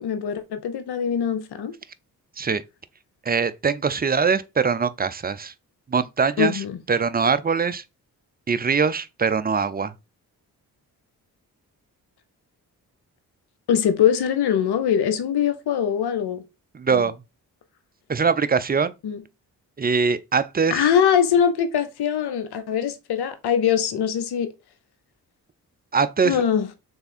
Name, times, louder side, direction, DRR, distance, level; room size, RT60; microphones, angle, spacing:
voice 1, 0.0-1.7 6.4-6.8 13.7-16.4 16.9-17.0 19.0-19.2 20.7-24.5 26.2-26.7, left 8 dB, 70° left, 0.9 m, -22 dB
voice 2, 3.3-5.5 5.9-7.8 8.5-9.9 16.7-17.2 18.1-18.9 19.8-20.9 25.9-26.4, right 5 dB, 25° right, 0.4 m, -22 dB
3.5 x 3.4 x 4.2 m
supercardioid pair, 45°, 40 cm